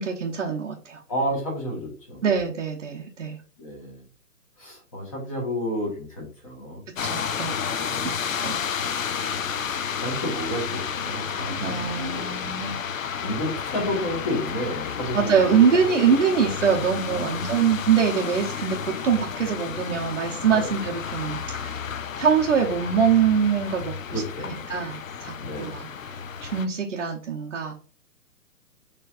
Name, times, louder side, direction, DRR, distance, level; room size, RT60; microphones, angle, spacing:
voice 1, 0.0-1.0 2.2-3.4 7.0-7.6 8.4-8.6 11.5-12.8 15.1-21.8 22.2-27.7, right 7 dB, 50° right, -1 dB, 0.9 m, -24 dB
voice 2, 1.1-2.2 3.6-4.0 4.6-6.8 7.7-8.1 9.6-11.9 12.1-12.2 13.2-15.3 15.9-16.0 17.1-17.3 20.5-20.7 24.1-24.7 25.4-25.8, equal, 20° left, -2 dB, 1.3 m, -31 dB
sound 1, 7.0-26.7, left 7 dB, 55° left, 0.6 m, -31 dB
6.6 x 3.2 x 2.5 m, 0.41 s
hypercardioid pair, 175°, 48 cm